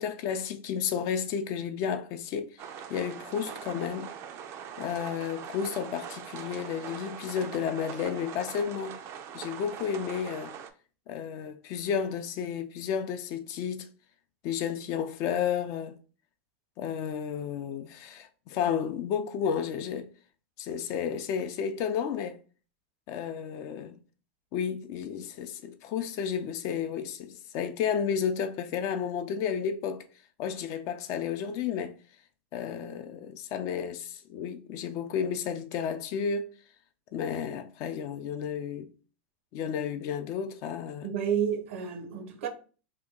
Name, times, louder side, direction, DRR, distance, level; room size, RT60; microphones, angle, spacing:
voice 1, 0.0-4.1 4.8-9.0 9.3-10.5 11.1-13.9 14.4-16.0 16.8-20.1 20.6-22.4 23.1-24.0 24.5-30.1 30.4-32.0 32.5-36.5 37.1-38.9 39.5-41.1, left 7 dB, 50° left, 0.5 m, -32 dB
sound 1, 2.6-10.7, right 8 dB, 40° right, 0.4 m, -42 dB
voice 2, 41.0-42.5, right 8 dB, 70° right, 0.7 m, -30 dB
2.9 x 2.2 x 3.6 m
hypercardioid pair, 120°, 7 cm